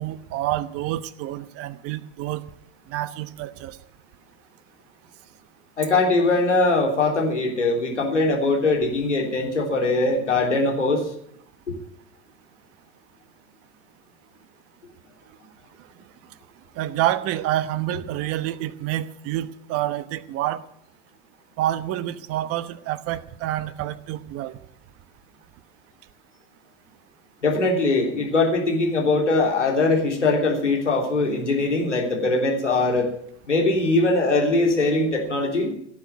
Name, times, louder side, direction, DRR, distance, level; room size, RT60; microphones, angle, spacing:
voice 1, 0.0-2.4 2.9-3.8 16.8-20.6 21.6-24.6, right 13 dB, 40° right, 15 dB, 1.1 m, -28 dB
voice 2, 5.8-11.1 11.7-11.8 27.4-33.1 33.5-35.7, left 2 dB, 85° left, 1 dB, 3.2 m, -21 dB
17.0 x 7.6 x 9.4 m, 0.71 s
figure-of-eight pair, 85°, 35 cm